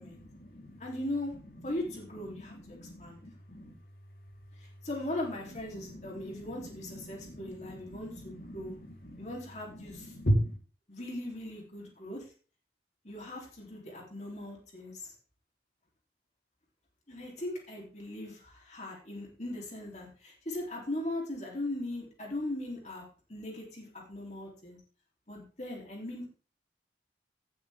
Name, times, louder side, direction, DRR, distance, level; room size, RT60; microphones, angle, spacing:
voice 1, 0.0-0.8 1.3-3.8 4.1-4.9 5.4-9.3 9.6-10.5, equal, 55° left, 0 dB, 3.9 m, -38 dB
voice 2, 0.8-1.3 1.6-3.2 4.6-8.7 9.2-10.1 10.9-12.3 13.0-15.1 17.1-23.0 23.3-24.8 25.3-26.3, left 1 dB, 40° left, -1 dB, 3.4 m, -39 dB
17.5 x 8.6 x 3.6 m, 0.38 s
head